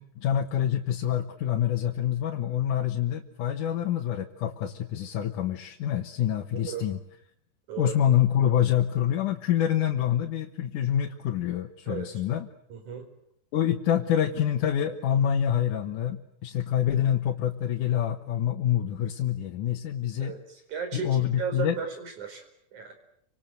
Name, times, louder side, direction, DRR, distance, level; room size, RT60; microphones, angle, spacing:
voice 1, 0.0-7.0 7.8-12.5 13.5-20.3 20.9-21.8, left 10 dB, 80° left, 3 dB, 2.8 m, -26 dB
voice 2, 6.5-6.9 7.7-8.0 11.9-12.1 12.7-13.1 20.2-22.4 22.7-23.0, right 6 dB, 70° right, 6 dB, 6.1 m, -35 dB
29.5 x 26.0 x 7.9 m, 0.71 s
omnidirectional pair, 3.6 m